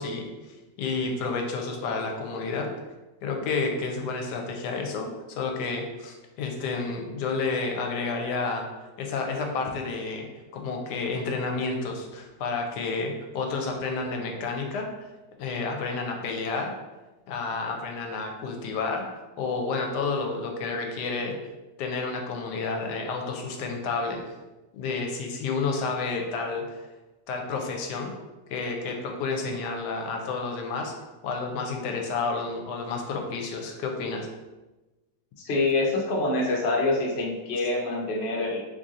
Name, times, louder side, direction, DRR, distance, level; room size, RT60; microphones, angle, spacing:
voice 1, 0.0-2.7 3.2-8.7 9.0-10.3 10.5-14.9 15.4-16.7 17.3-19.1 19.4-21.3 21.8-24.2 24.7-26.9 27.3-28.1 28.5-30.9 31.2-34.3, left 4 dB, 80° left, 2 dB, 1.1 m, -30 dB
voice 2, 35.4-38.6, left 2 dB, 55° left, -1 dB, 0.7 m, -26 dB
3.1 x 2.7 x 3.6 m, 1.1 s
omnidirectional pair, 1.8 m